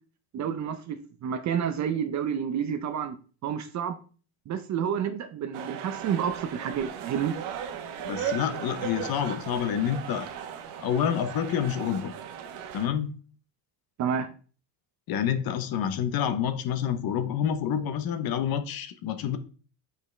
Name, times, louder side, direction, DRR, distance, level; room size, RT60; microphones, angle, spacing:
voice 1, 0.3-3.2 3.4-4.0 4.5-7.4 14.0-14.3, right 8 dB, 35° right, 0.5 m, -29 dB
sound 1, 5.5-12.9, right 8 dB, 85° right, 1.1 m, -37 dB
voice 2, 8.0-10.3 10.8-12.1 12.7-13.1 15.1-19.4, left 9 dB, 50° left, 0.8 m, -28 dB
7.9 x 4.9 x 3.2 m
cardioid pair, 160°, 48 cm